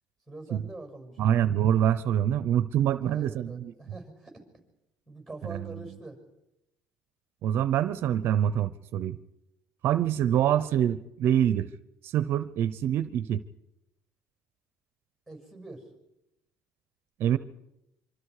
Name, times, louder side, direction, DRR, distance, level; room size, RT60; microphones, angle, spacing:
voice 1, 0.3-1.3 3.0-4.4 5.1-6.2 10.4-10.6 15.3-15.9, right 2 dB, ahead, 4 dB, 6.4 m, -44 dB
voice 2, 1.2-3.7 5.5-5.7 7.4-9.2 9.8-11.7 12.0-13.4 17.2-17.4, right 10 dB, 60° right, 14 dB, 0.8 m, -25 dB
25.5 x 25.0 x 4.9 m, 0.88 s
cardioid pair, 125°, 4 cm